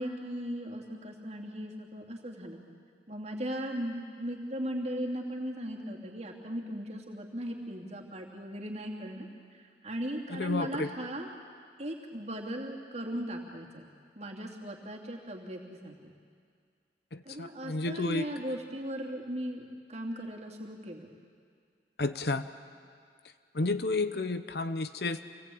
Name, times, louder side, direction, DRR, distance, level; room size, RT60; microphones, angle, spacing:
voice 1, 0.0-2.6 3.1-11.3 11.8-13.8 14.2-16.1 17.2-21.1, equal, 40° right, -1 dB, 2.8 m, -38 dB
voice 2, 10.3-10.9 17.1-18.3 22.0-22.5 23.5-25.2, left 2 dB, 60° left, 10 dB, 0.9 m, -31 dB
26.5 x 18.5 x 8.7 m, 2.1 s
head